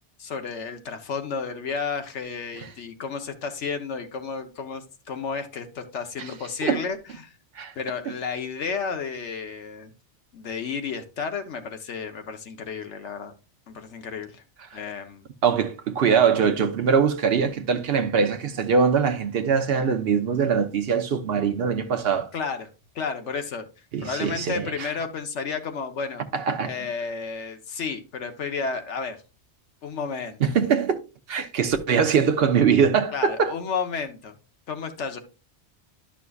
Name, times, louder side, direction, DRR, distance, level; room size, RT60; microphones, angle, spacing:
voice 1, 0.2-7.3 7.7-9.9 10.3-13.3 13.7-14.4 14.7-15.3 22.3-22.7 22.9-23.7 24.0-26.2 26.6-29.2 29.8-30.4 33.1-34.4 34.7-35.2, left 5 dB, 80° left, 1.3 m, -32 dB
voice 2, 15.4-22.3 23.9-24.9 26.3-26.7 30.4-31.0 31.3-33.5, right 6 dB, 60° right, 1.0 m, -22 dB
11.0 x 6.0 x 2.3 m
omnidirectional pair, 1.2 m